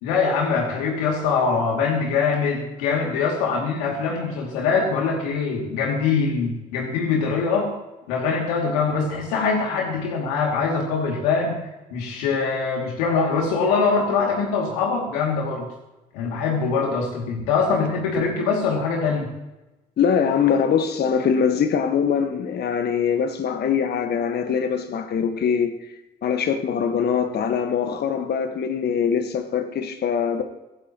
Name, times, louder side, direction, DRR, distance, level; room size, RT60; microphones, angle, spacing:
voice 1, 0.0-7.8 8.1-11.6 11.9-15.7 16.1-19.3, left 5 dB, 80° left, 2.6 m, -23 dB
voice 2, 20.0-25.8 26.2-30.4, left 7 dB, 55° left, 1.5 m, -22 dB
24.0 x 15.0 x 3.1 m
hypercardioid pair, 50°, 20 cm